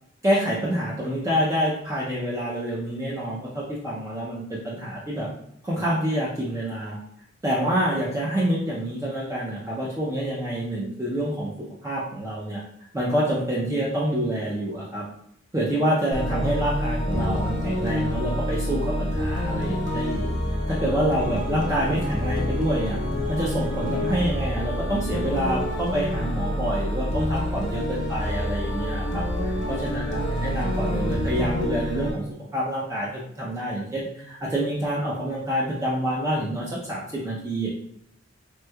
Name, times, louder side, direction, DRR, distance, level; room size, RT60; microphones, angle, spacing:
voice 1, 0.2-5.3 5.6-7.0 7.4-11.5 11.8-12.6 12.9-15.0 15.5-20.3 20.7-23.0 23.3-29.2 29.7-32.2 32.5-37.7, equal, 15° right, -6 dB, 0.5 m, -27 dB
sound 1, 16.1-32.1, equal, 65° left, 0.9 m, -27 dB
3.1 x 3.1 x 2.2 m, 0.70 s
head